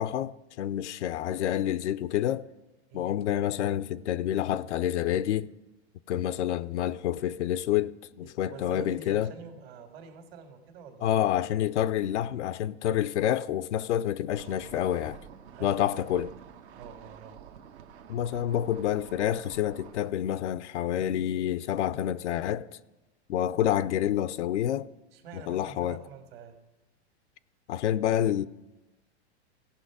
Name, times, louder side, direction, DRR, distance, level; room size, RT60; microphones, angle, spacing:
voice 1, 0.0-2.5 2.9-5.5 6.1-9.3 11.0-15.2 15.6-16.3 18.1-22.7 23.3-24.9 25.3-26.0 27.7-28.5, left 11 dB, 85° left, 0.5 m, -28 dB
voice 2, 8.2-11.3 15.5-16.3 16.7-17.4 25.1-26.6, right 5 dB, 60° right, 1.9 m, -46 dB
sound 1, 14.3-20.1, right 8 dB, 75° right, 1.0 m, -49 dB
16.5 x 5.7 x 4.8 m
hypercardioid pair, 120°, 34 cm